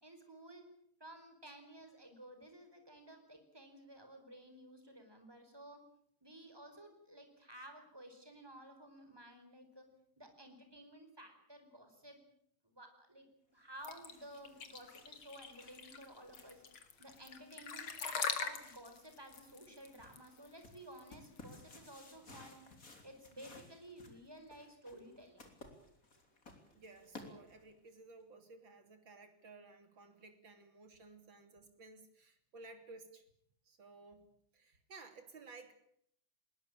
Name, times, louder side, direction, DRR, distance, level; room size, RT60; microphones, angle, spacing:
voice 1, 0.0-0.7 1.0-5.8 6.2-9.9 10.2-12.2 12.6-13.2 13.5-16.6 17.0-22.6 23.0-25.5, right 1 dB, 10° right, 6 dB, 4.8 m, -54 dB
sound 1, 13.7-27.9, left 2 dB, 40° left, 4.0 m, -59 dB
sound 2, 13.8-21.5, left 6 dB, 90° left, 3.0 m, -42 dB
voice 2, 26.7-33.3 33.7-35.7, right 3 dB, 70° right, 8 dB, 3.7 m, -56 dB
20.5 x 20.0 x 9.0 m, 0.67 s
omnidirectional pair, 2.2 m